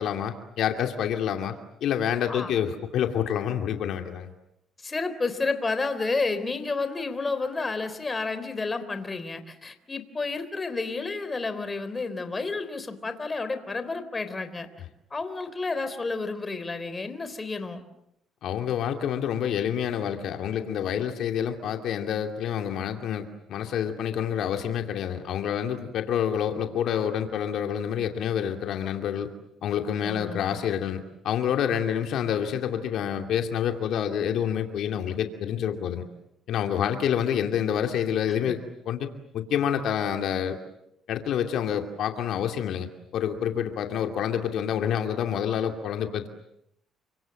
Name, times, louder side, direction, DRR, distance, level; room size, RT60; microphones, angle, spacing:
voice 1, 0.0-1.5 1.8-4.3 18.4-29.3 29.6-36.0 36.5-38.6 38.9-39.1 39.3-40.6 41.1-42.9 43.1-46.3, left 9 dB, 70° left, 5 dB, 2.6 m, -28 dB
voice 2, 4.8-14.7 15.1-17.8 30.0-30.7 38.3-38.6, left 3 dB, 25° left, 10 dB, 3.6 m, -31 dB
29.5 x 25.5 x 7.8 m, 0.79 s
cardioid pair, 105°, 0 cm